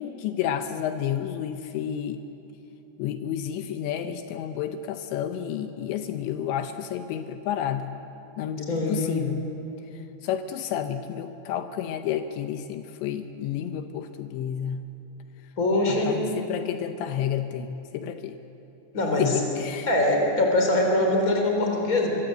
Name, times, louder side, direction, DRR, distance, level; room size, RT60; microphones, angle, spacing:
voice 1, 0.0-2.2 3.0-8.0 8.4-9.5 10.2-14.8 15.9-18.4 19.2-19.9, left 9 dB, 80° left, 8 dB, 3.1 m, -30 dB
voice 2, 8.7-9.2 15.6-16.1 18.9-19.4 19.9-22.1, left 2 dB, 20° left, 1 dB, 4.0 m, -23 dB
24.0 x 23.5 x 7.9 m, 3.0 s
omnidirectional pair, 5.2 m